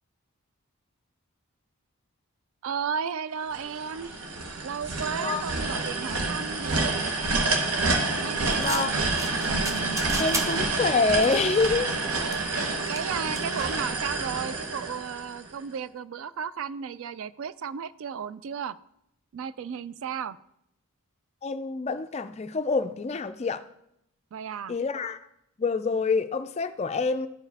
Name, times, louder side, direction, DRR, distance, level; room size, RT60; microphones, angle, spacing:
voice 1, 2.6-4.1 4.6-7.0 8.2-8.9 12.1-12.5 12.9-18.8 19.3-20.4 24.3-24.8, right 7 dB, 65° right, 0.3 m, -34 dB
sound 1, 3.5-15.6, right 3 dB, 85° right, 1.0 m, -28 dB
sound 2, 8.5-14.3, right 1 dB, 15° right, 0.6 m, -37 dB
voice 2, 8.6-8.9 10.2-12.0 21.4-23.6 24.7-25.2 25.6-27.3, left 4 dB, 30° left, 0.3 m, -26 dB
13.5 x 4.6 x 3.4 m
head